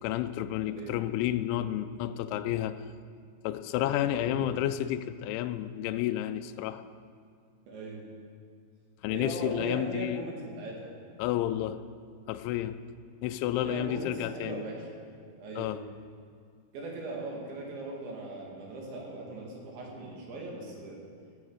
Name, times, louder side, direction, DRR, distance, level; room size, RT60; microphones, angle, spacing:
voice 1, 0.0-2.8 3.4-6.8 9.0-10.2 11.2-11.8 12.3-12.8 13.2-14.6 15.5-15.8, left 12 dB, 85° left, 10 dB, 2.7 m, -31 dB
voice 2, 4.1-4.5 7.7-8.1 9.1-10.9 13.5-15.0 15.4-15.7 16.7-21.1, right 2 dB, 65° right, -1 dB, 4.4 m, -39 dB
17.0 x 13.0 x 5.0 m, 2.2 s
omnidirectional pair, 6.0 m